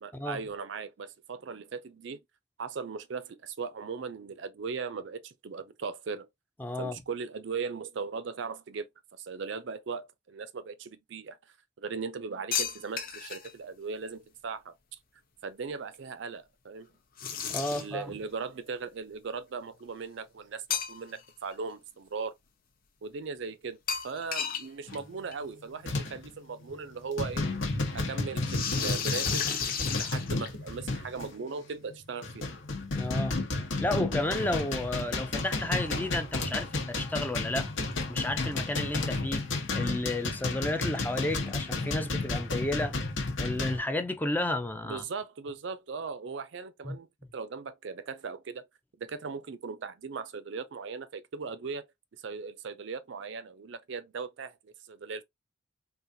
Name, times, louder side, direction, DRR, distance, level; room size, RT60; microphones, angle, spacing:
voice 1, 0.0-2.2 2.6-6.3 6.8-11.4 11.8-14.8 15.4-16.9 17.7-22.4 23.0-23.8 24.0-27.5 27.9-29.5 30.0-32.4 44.8-47.1 47.3-48.7 49.0-51.9 52.2-55.2, right 5 dB, 60° right, 0.4 m, -38 dB
voice 2, 6.6-7.0 17.5-18.1 32.9-33.4 33.8-37.7 38.1-39.5 39.7-43.0 43.4-45.0 46.8-47.0, left 1 dB, 10° left, 0.4 m, -32 dB
sound 1, 12.5-13.5 17.2-18.0 20.7-21.3 21.7-21.8 23.9-24.7 24.9-25.0 25.3-25.4 26.6-26.7 28.4-30.7, left 7 dB, 45° left, 0.7 m, -33 dB
sound 2, 24.9-25.1 25.8-26.3 26.7-26.9 27.2-31.3 31.9-43.8, left 3 dB, 70° left, 1.0 m, -32 dB
3.9 x 2.4 x 2.6 m
head